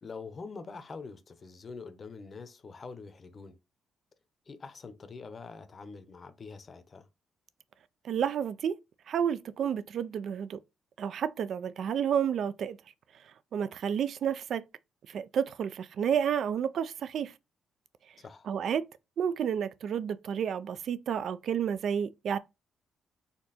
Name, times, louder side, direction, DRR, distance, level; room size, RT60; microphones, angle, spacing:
voice 1, 0.0-3.6 4.5-7.1 18.2-18.5, left 4 dB, 40° left, 0.7 m, -45 dB
voice 2, 8.0-8.8 9.1-10.6 11.0-12.8 13.5-14.6 15.1-17.3 18.5-18.8 19.2-22.4, right 8 dB, 65° right, 0.4 m, -30 dB
4.3 x 2.8 x 4.1 m
cardioid pair, 90°, 0 cm